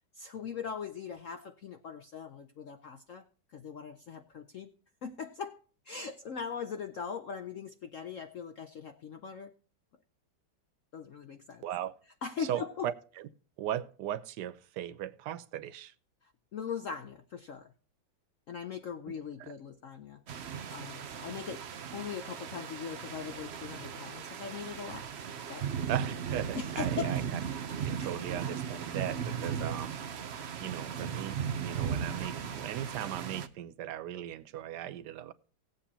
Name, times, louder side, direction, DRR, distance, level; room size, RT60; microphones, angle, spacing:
voice 1, 0.1-4.7 5.0-5.6 5.8-9.5 10.9-11.7 12.2-12.9 16.2-17.7 18.5-21.6 21.9-25.1 25.5-25.8 26.5-27.2 28.0-28.1, left 6 dB, 70° left, 0.7 m, -40 dB
voice 2, 11.6-11.9 12.5-13.3 13.6-15.9 19.4-19.5 25.9-27.4 27.8-30.0 30.6-35.3, right 11 dB, 65° right, 1.1 m, -38 dB
sound 1, 20.3-33.5, right 7 dB, 90° right, 0.5 m, -37 dB
18.0 x 8.0 x 2.8 m
omnidirectional pair, 2.2 m